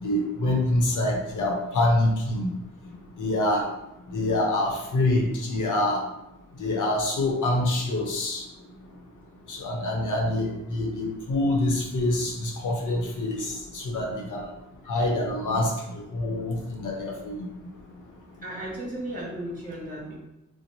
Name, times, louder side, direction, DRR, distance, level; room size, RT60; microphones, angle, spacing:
voice 1, 0.0-2.5 3.2-3.6 4.1-6.0 6.6-8.4 9.5-14.4 14.9-17.4, left 1 dB, 75° left, -1 dB, 0.8 m, -26 dB
voice 2, 18.4-20.2, right 1 dB, 25° right, -5 dB, 1.4 m, -35 dB
2.9 x 2.1 x 4.0 m, 0.89 s
cardioid pair, 80°, 31 cm